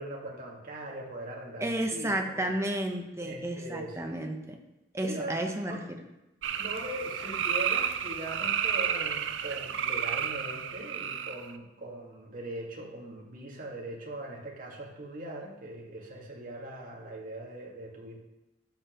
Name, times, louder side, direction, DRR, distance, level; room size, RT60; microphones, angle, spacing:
voice 1, 0.0-2.5 3.2-4.1 5.0-5.8 6.5-18.2, right 1 dB, 50° right, -2 dB, 1.9 m, -40 dB
voice 2, 1.6-4.6 4.9-5.8, right 1 dB, 15° right, 3 dB, 0.9 m, -32 dB
sound 1, 6.4-11.5, right 8 dB, 80° right, 0.5 m, -31 dB
11.5 x 7.0 x 3.0 m, 0.97 s
head